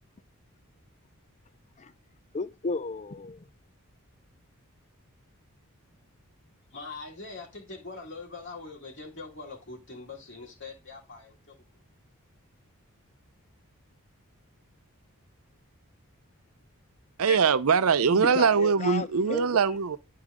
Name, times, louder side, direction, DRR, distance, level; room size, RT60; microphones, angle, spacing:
voice 1, 2.3-3.5 17.3-17.4 18.1-19.6, left 3 dB, 30° left, 0.5 m, -33 dB
voice 2, 6.7-11.8, left 3 dB, 55° left, 2.3 m, -43 dB
voice 3, 17.2-20.0, right 6 dB, 70° right, 0.6 m, -22 dB
11.0 x 4.7 x 3.6 m
head